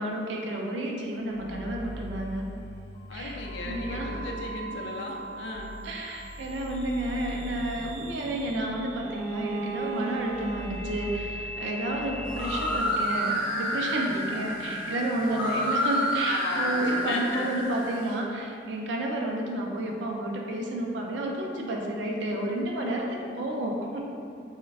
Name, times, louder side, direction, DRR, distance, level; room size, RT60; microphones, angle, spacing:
voice 1, 0.0-2.5 3.1-4.2 5.8-23.1 23.4-24.1, right 1 dB, 75° right, 0 dB, 0.4 m, -31 dB
sound 1, 1.1-12.8, right 1 dB, 30° left, 0.8 m, -40 dB
voice 2, 3.1-5.8 14.1-14.4 16.2-17.6 23.0-23.3, left 2 dB, 70° left, 0 dB, 0.4 m, -36 dB
Bowed string instrument, 9.0-13.7, right 3 dB, 10° left, 0.5 m, -38 dB
sound 2, 12.3-18.1, equal, 50° left, 1.0 m, -29 dB
3.5 x 2.1 x 2.3 m, 2.4 s
head